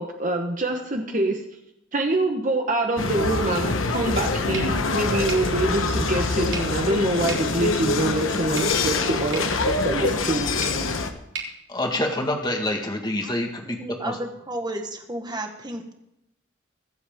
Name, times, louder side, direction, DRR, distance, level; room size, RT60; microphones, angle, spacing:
voice 1, 0.0-1.4 1.9-10.7, right 2 dB, 40° right, 3 dB, 1.2 m, -25 dB
sound 1, 3.0-11.1, left 3 dB, 85° left, 1.3 m, -25 dB
sound 2, 4.5-12.6, right 4 dB, 60° right, 3.4 m, -41 dB
voice 2, 11.7-13.8 14.0-14.2, left 1 dB, 20° left, 3 dB, 1.8 m, -26 dB
voice 3, 13.6-15.9, right 1 dB, 20° right, 4 dB, 1.6 m, -32 dB
24.0 x 8.0 x 3.7 m, 0.85 s
head